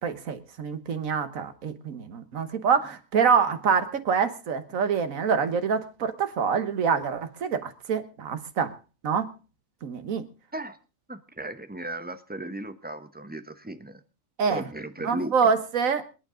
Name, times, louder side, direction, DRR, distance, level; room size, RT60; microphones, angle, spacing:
voice 1, 0.0-8.7 9.0-9.3 9.8-10.2 14.4-14.6 15.0-16.0, right 6 dB, 80° right, 10 dB, 1.6 m, -26 dB
voice 2, 11.1-14.0 14.5-15.3, right 1 dB, 10° right, 10 dB, 0.8 m, -36 dB
26.5 x 9.3 x 3.8 m, 0.33 s
omnidirectional pair, 1.4 m